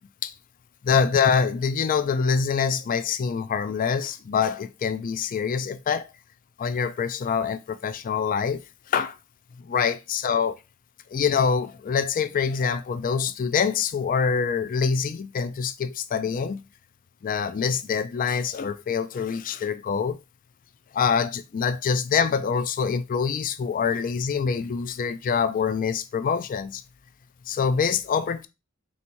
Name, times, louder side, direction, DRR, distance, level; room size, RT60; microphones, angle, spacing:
voice 1, 0.8-6.1 6.6-9.2 9.6-10.6 11.1-16.6 17.2-20.2 20.9-26.8 27.5-28.5, left 6 dB, 40° left, 0.3 m, -25 dB
3.4 x 2.8 x 4.4 m
head